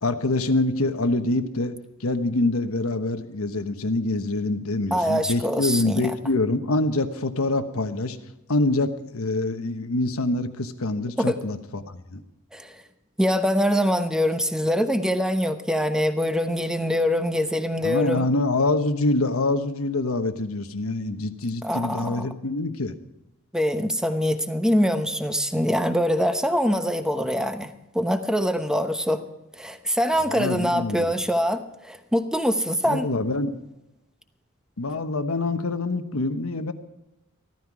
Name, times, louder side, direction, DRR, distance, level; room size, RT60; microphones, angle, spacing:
voice 1, 0.0-8.2 8.5-12.2 17.8-22.9 30.3-31.1 32.8-33.6 34.8-36.7, left 2 dB, 85° left, 9 dB, 1.1 m, -25 dB
voice 2, 4.9-6.1 11.2-11.4 12.5-12.8 13.2-18.3 21.6-22.3 23.5-29.2 29.6-33.1, equal, 5° right, 8 dB, 0.9 m, -24 dB
14.5 x 13.5 x 4.8 m, 0.91 s
head